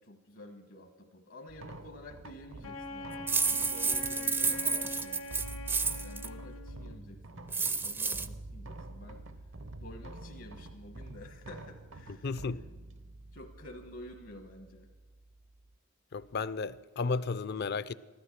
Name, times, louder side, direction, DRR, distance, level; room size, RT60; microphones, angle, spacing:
voice 1, 0.0-9.2 9.8-12.4 13.3-14.9, left 1 dB, 70° left, 1.2 m, -50 dB
sound 1, 1.5-15.8, right 2 dB, 70° right, 0.8 m, -47 dB
Wind instrument woodwind instrument, 2.6-7.0, left 2 dB, 90° left, 1.0 m, -43 dB
sound 2, 3.3-6.3 7.5-8.3, right 4 dB, 10° right, 0.4 m, -30 dB
voice 2, 12.1-12.6 16.1-17.9, left 4 dB, 55° left, 0.5 m, -33 dB
14.5 x 13.0 x 6.6 m
head